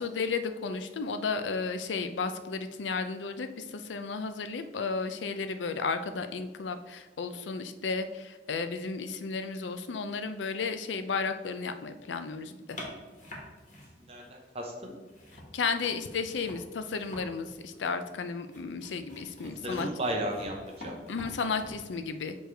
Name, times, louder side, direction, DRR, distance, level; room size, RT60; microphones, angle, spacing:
voice 1, 0.0-12.8 15.5-19.9 21.1-22.4, left 4 dB, 85° left, 9 dB, 0.5 m, -33 dB
sound 1, 12.7-14.5 14.8-22.0, left 1 dB, 45° left, 1.5 m, -47 dB
voice 2, 14.0-14.9 19.6-20.9, right 1 dB, 35° right, 1 dB, 0.7 m, -34 dB
6.8 x 3.3 x 4.5 m, 1.3 s
head